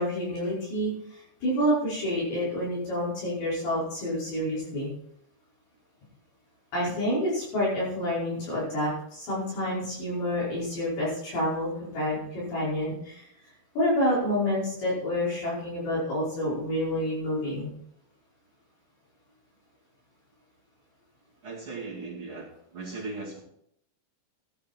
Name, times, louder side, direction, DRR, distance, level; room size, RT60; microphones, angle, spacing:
voice 1, 0.0-4.9 6.7-13.3 13.8-17.7, equal, 60° left, -8 dB, 7.2 m, -28 dB
voice 2, 21.4-23.4, right 3 dB, 35° right, -4 dB, 2.5 m, -38 dB
15.5 x 10.5 x 4.5 m, 0.72 s
omnidirectional pair, 5.1 m